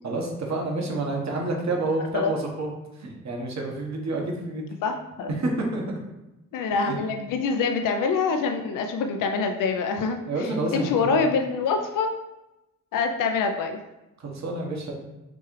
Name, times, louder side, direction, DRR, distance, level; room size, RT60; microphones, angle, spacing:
voice 1, 0.0-2.7 3.0-4.7 5.4-6.0 6.7-7.0 10.3-11.2 14.2-14.9, right 2 dB, 50° right, 0 dB, 1.2 m, -29 dB
voice 2, 4.8-5.3 6.5-12.1 12.9-13.8, left 5 dB, 65° left, 5 dB, 0.5 m, -25 dB
6.0 x 2.4 x 3.2 m, 0.96 s
supercardioid pair, 50°, 34 cm